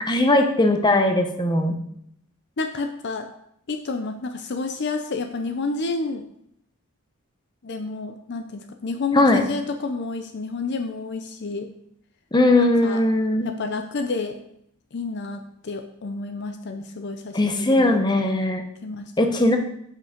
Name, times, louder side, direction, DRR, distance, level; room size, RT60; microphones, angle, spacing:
voice 1, 0.1-1.8 9.1-9.4 12.3-13.5 17.3-18.6 19.2-19.6, left 2 dB, 20° left, 4 dB, 0.8 m, -19 dB
voice 2, 2.6-3.3 3.7-6.2 7.6-11.7 12.6-13.0 13.4-14.4 14.9-18.0 18.8-19.1, left 3 dB, 50° left, 6 dB, 0.6 m, -30 dB
7.7 x 5.7 x 5.1 m, 0.72 s
head